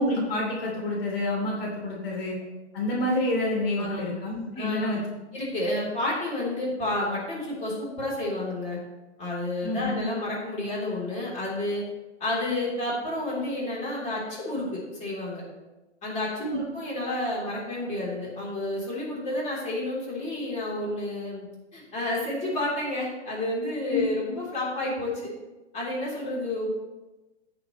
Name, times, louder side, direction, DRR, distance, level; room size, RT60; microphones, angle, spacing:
voice 1, 0.0-2.4 2.7-5.0 9.6-10.0 16.4-16.6 23.9-24.0, left 1 dB, 55° left, -2 dB, 3.0 m, -28 dB
voice 2, 4.6-5.0 5.3-8.8 9.2-11.8 12.2-15.4 16.0-21.5 21.7-25.3 25.7-26.7, left 1 dB, 20° left, -5 dB, 3.4 m, -30 dB
15.5 x 6.7 x 3.1 m, 1.1 s
hypercardioid pair, 135°, 35 cm